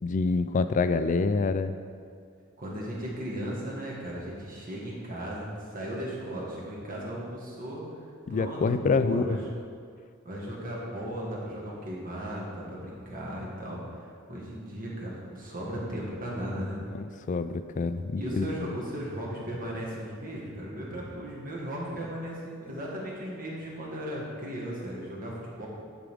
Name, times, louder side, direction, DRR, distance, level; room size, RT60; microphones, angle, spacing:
voice 1, 0.0-1.7 8.3-9.4 16.9-18.5, left 4 dB, 35° left, 11 dB, 0.3 m, -26 dB
voice 2, 2.6-7.8 8.3-9.4 10.2-16.8 18.2-25.7, equal, 40° right, -4 dB, 1.6 m, -36 dB
10.0 x 4.9 x 3.6 m, 2.2 s
head